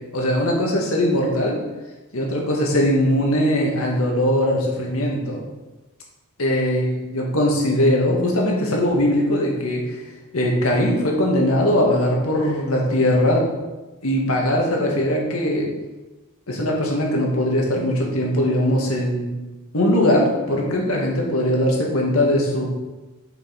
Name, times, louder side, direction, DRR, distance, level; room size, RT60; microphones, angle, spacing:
voice 1, 0.1-1.6 2.1-5.4 6.4-10.0 10.3-13.5 14.0-15.7 16.5-19.3 19.7-22.7, left 1 dB, 75° left, -1 dB, 2.0 m, -20 dB
7.0 x 5.4 x 5.3 m, 1.1 s
head